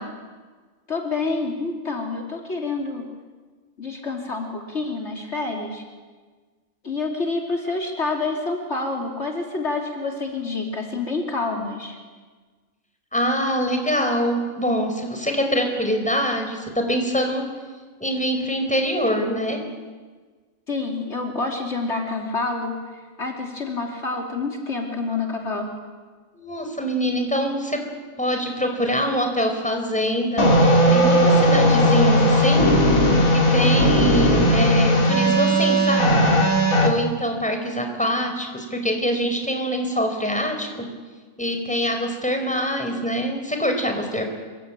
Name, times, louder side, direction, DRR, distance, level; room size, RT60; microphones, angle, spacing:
voice 1, 0.9-3.1 3.8-5.8 6.8-12.0 20.7-25.7, left 3 dB, 55° left, 1 dB, 3.3 m, -28 dB
voice 2, 13.1-17.5 18.0-19.6 26.3-27.8 28.2-32.7 33.3-36.3 36.8-40.7 41.4-44.2, equal, 5° left, 4 dB, 4.6 m, -24 dB
sound 1, 30.4-36.9, equal, 85° left, 3.4 m, -17 dB
26.5 x 24.5 x 9.0 m, 1.4 s
omnidirectional pair, 1.4 m